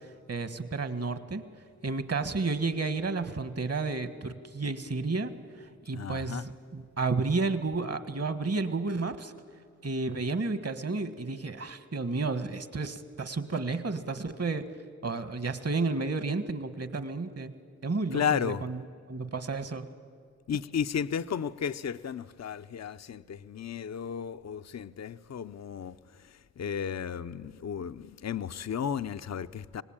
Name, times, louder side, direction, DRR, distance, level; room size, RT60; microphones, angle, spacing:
voice 1, 0.3-1.4 1.8-5.3 5.6-9.3 9.8-14.6 15.0-17.5 17.8-18.8 19.1-19.9, right 3 dB, 50° right, 11 dB, 1.6 m, -31 dB
voice 2, 5.9-6.5 18.1-18.6 20.5-26.0 26.6-29.8, left 7 dB, 55° left, 11 dB, 0.6 m, -33 dB
25.0 x 19.0 x 8.9 m, 2.1 s
cardioid pair, 45°, 33 cm